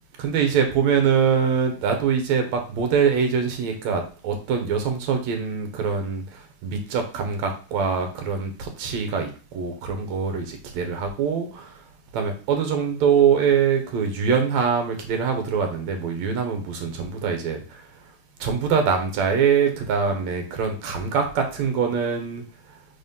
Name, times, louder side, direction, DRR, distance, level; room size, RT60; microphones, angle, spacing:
voice 1, 0.2-11.8 12.1-17.9 18.4-22.4, right 6 dB, 65° right, 4 dB, 2.0 m, -23 dB
4.7 x 4.1 x 5.4 m, 0.36 s
omnidirectional pair, 3.9 m